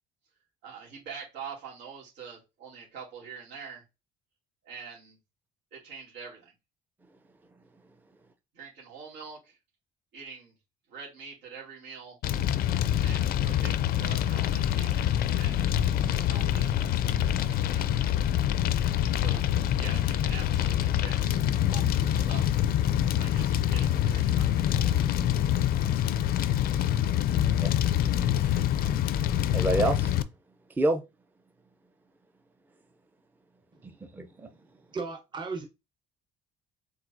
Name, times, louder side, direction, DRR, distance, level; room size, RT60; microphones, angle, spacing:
voice 1, 0.6-3.8 4.6-5.2 5.7-6.5 8.5-9.6 10.1-10.5 10.9-12.2 13.0-16.7 17.4-18.2 19.2-19.4 19.8-22.6 23.2-25.0 26.6-27.1, right 6 dB, 90° right, 2.5 m, -45 dB
Fire, 12.2-30.2, left 11 dB, 60° left, 0.4 m, -26 dB
voice 2, 29.5-30.1 30.8-31.0 33.8-34.5, right 2 dB, 10° right, 0.5 m, -28 dB
voice 3, 34.9-35.6, right 4 dB, 25° right, 0.9 m, -35 dB
4.7 x 3.8 x 2.6 m
cardioid pair, 110°, 17 cm